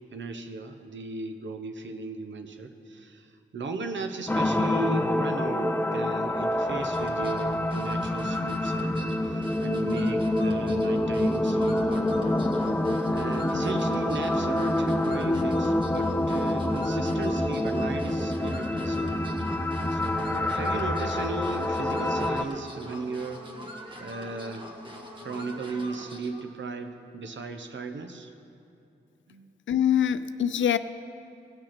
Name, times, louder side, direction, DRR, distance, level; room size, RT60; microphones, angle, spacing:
voice 1, 0.1-12.2 13.1-19.2 19.9-23.4 24.0-24.7 25.2-28.3 29.3-29.5, right 3 dB, 70° right, 7 dB, 1.0 m, -36 dB
sound 1, 4.3-22.4, left 1 dB, 10° left, 0.6 m, -27 dB
sound 2, 6.8-26.5, equal, 25° right, 1.6 m, -44 dB
voice 2, 29.7-30.8, left 9 dB, 75° left, 13 dB, 0.5 m, -24 dB
17.5 x 6.3 x 5.9 m, 2.6 s
cardioid pair, 45°, 20 cm